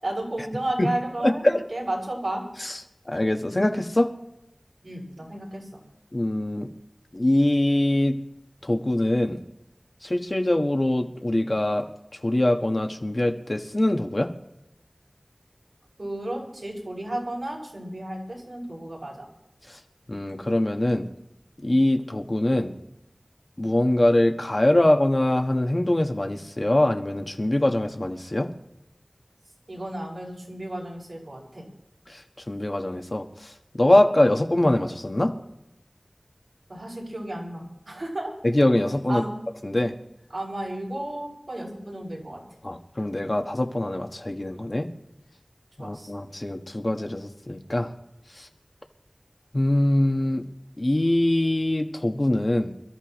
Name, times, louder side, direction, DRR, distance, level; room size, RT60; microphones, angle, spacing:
voice 1, 0.0-2.4 4.8-5.6 16.0-19.3 29.7-31.6 36.7-38.3 39.1-39.3 40.3-42.4 45.8-46.1, right 1 dB, 90° right, -3 dB, 6.5 m, -33 dB
voice 2, 1.2-1.6 2.6-2.8 3.1-4.1 6.1-6.7 7.1-8.2 8.6-9.4 10.0-11.8 12.2-14.3 20.1-21.1 21.6-22.7 23.6-28.5 32.5-35.3 38.4-39.2 39.6-39.9 42.6-44.9 45.8-47.9 49.5-50.4 50.8-52.7, left 1 dB, 50° left, 4 dB, 1.4 m, -23 dB
27.5 x 14.0 x 3.1 m, 0.86 s
wide cardioid pair, 45°, 0 cm